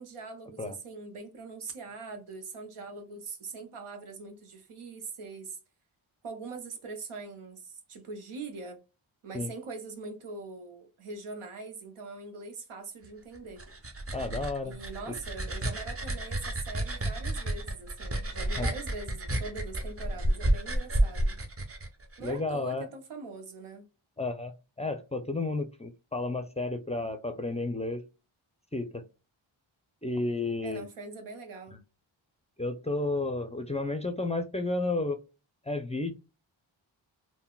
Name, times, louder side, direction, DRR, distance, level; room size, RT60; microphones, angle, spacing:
voice 1, 0.0-5.6 6.2-8.8 9.2-13.6 14.6-21.4 22.2-23.9 26.9-27.1 30.6-31.8, right 3 dB, 85° right, 0.9 m, -42 dB
sound 1, 13.3-22.3, right 1 dB, 30° right, 0.6 m, -31 dB
voice 2, 14.1-14.7 15.1-15.2 18.6-18.7 22.2-22.9 24.2-28.0 28.7-29.0 30.0-30.9 32.6-35.2 35.7-36.1, left 2 dB, 15° left, 0.4 m, -32 dB
3.7 x 2.1 x 2.3 m
cardioid pair, 60°, 49 cm